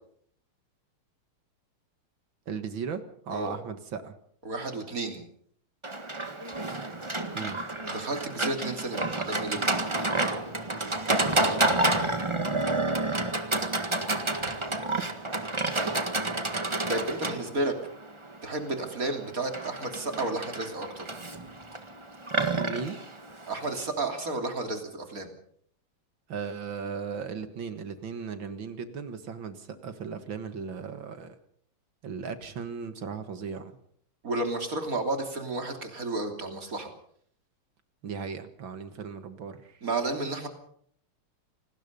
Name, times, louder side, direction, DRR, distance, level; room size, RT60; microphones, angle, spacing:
voice 1, 2.5-4.1 7.3-7.6 14.4-14.7 22.7-23.0 26.3-31.4 32.0-33.7 38.0-39.8, right 6 dB, 60° right, 10 dB, 2.4 m, -37 dB
voice 2, 4.5-5.2 7.8-9.8 16.9-17.8 18.4-21.1 23.5-25.3 34.2-36.9 39.8-40.5, right 2 dB, 40° right, 5 dB, 3.6 m, -32 dB
Livestock farm animals working animals, 5.8-23.9, right 2 dB, 15° right, 1.5 m, -30 dB
27.0 x 19.5 x 5.4 m, 0.63 s
omnidirectional pair, 2.4 m